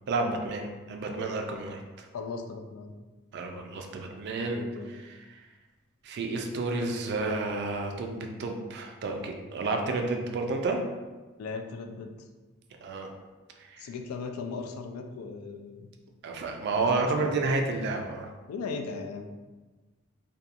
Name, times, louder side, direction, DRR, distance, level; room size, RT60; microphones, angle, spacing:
voice 1, 0.1-2.1 3.3-4.6 5.2-5.3 6.0-10.8 12.8-13.1 13.7-13.9 16.2-18.3, right 3 dB, 55° right, 3 dB, 0.3 m, -30 dB
voice 2, 2.1-2.9 4.4-5.0 11.4-12.1 13.8-15.9 16.7-17.4 18.5-19.3, left 4 dB, 85° left, 6 dB, 0.3 m, -38 dB
2.7 x 2.2 x 2.4 m, 1.2 s
head